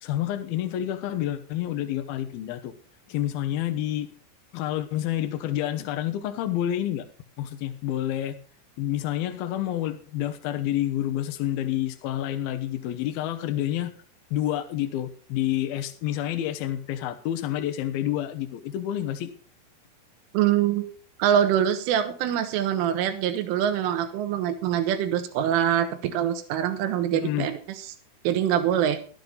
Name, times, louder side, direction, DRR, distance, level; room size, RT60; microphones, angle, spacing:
voice 1, 0.0-2.7 3.1-4.1 4.5-7.1 7.4-8.4 8.8-13.9 14.3-19.3 27.1-27.5, left 12 dB, 90° left, 8 dB, 2.1 m, -28 dB
voice 2, 20.3-20.9 21.2-27.6 28.3-29.0, right 10 dB, 80° right, 9 dB, 3.8 m, -24 dB
13.5 x 12.0 x 4.0 m, 0.41 s
omnidirectional pair, 5.8 m